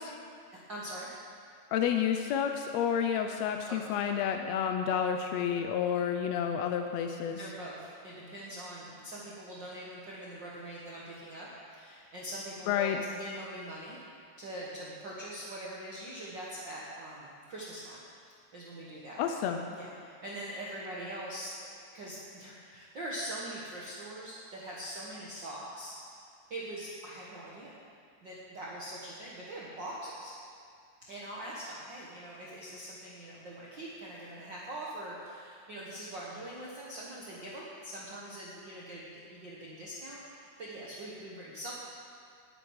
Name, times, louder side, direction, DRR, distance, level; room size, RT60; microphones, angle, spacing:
voice 1, 0.7-1.1 3.7-3.8 7.3-18.0 18.3-19.2 19.7-21.7 21.9-25.9 26.5-27.7 28.2-30.3 31.1-41.7, right 1 dB, 45° right, -6 dB, 1.6 m, -43 dB
voice 2, 1.7-7.4 12.7-13.0 19.2-19.6, left 8 dB, 80° left, 5 dB, 1.5 m, -30 dB
18.5 x 9.0 x 4.8 m, 2.2 s
omnidirectional pair, 3.7 m